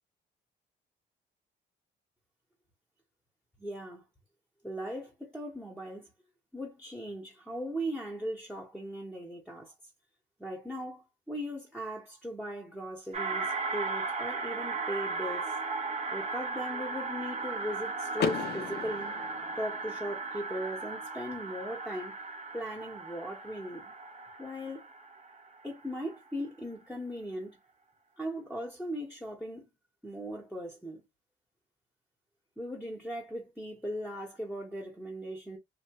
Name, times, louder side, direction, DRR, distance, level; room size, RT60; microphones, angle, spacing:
voice 1, 3.6-4.0 4.6-6.1 6.5-9.7 10.4-15.5 16.1-19.2 19.6-22.2 22.5-23.9 24.4-24.9 25.6-27.6 28.2-29.7 30.0-31.0 32.6-35.6, equal, 5° left, 1.1 m, -38 dB
sound 1, 13.1-25.8, right 4 dB, 35° right, 0.8 m, -36 dB
Car / Door, 18.2-20.1, left 8 dB, 55° left, 0.5 m, -35 dB
2.7 x 2.3 x 2.9 m
cardioid pair, 90°, 20 cm